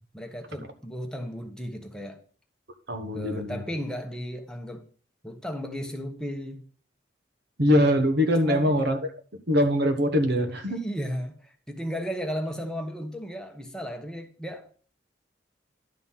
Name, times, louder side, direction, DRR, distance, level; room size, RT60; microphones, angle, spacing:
voice 1, 0.1-2.2 3.1-4.8 5.2-6.6 7.6-7.8 8.4-8.8 10.5-14.7, equal, 5° left, 1.1 m, -35 dB
voice 2, 2.9-3.6 7.6-9.0 9.5-10.8, equal, 60° right, 1.3 m, -23 dB
11.5 x 4.0 x 5.7 m
head